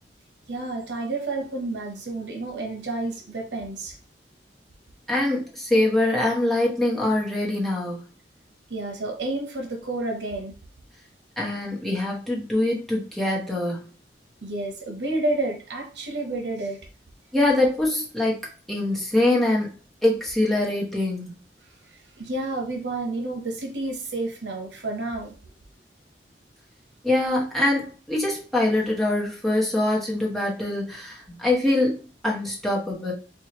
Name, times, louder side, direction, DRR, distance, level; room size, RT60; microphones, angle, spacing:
voice 1, 0.5-3.9 8.7-10.5 14.4-16.8 22.2-25.3, right 2 dB, 80° right, 2 dB, 0.9 m, -30 dB
voice 2, 5.1-8.0 11.4-13.9 17.3-19.7 20.0-21.3 27.0-33.1, left 1 dB, ahead, -4 dB, 1.0 m, -24 dB
4.5 x 2.3 x 2.9 m, 0.36 s
head